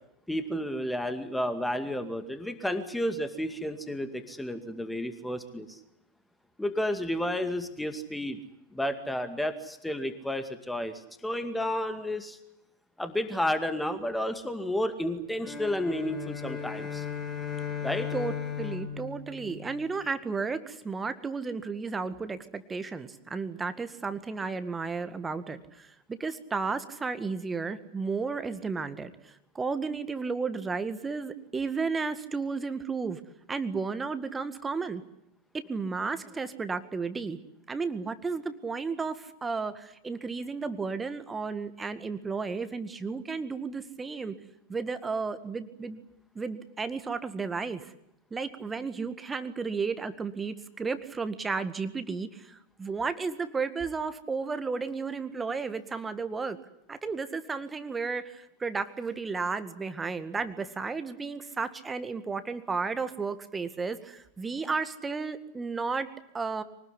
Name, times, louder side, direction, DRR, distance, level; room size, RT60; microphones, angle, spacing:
voice 1, 0.3-5.8 6.6-8.4 8.7-10.9 11.2-12.4 13.0-17.0 17.8-18.1, left 1 dB, 5° left, 9 dB, 2.2 m, -31 dB
sound 1, 15.4-20.1, left 8 dB, 25° left, 3.8 m, -36 dB
voice 2, 18.1-33.2 33.5-35.0 35.7-37.4 37.7-44.3 44.7-46.0 46.4-47.9 48.3-56.6 56.9-66.6, right 4 dB, 15° right, 11 dB, 1.9 m, -33 dB
24.5 x 19.5 x 10.0 m, 0.82 s
figure-of-eight pair, 90°, 0 cm